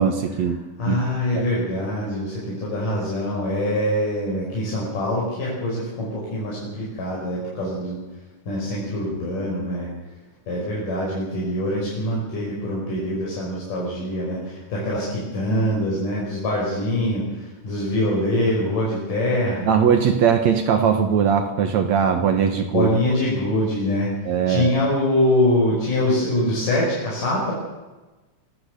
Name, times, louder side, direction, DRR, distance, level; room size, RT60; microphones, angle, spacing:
voice 1, 0.0-1.0 1.3-1.4 19.7-22.9 24.2-24.7, right 7 dB, 65° right, 7 dB, 2.4 m, -20 dB
voice 2, 0.8-8.0 8.5-9.9 10.5-19.7 22.7-24.1 24.5-27.5, left 1 dB, 85° left, -5 dB, 7.3 m, -24 dB
24.5 x 15.0 x 8.1 m, 1.2 s
omnidirectional pair, 3.6 m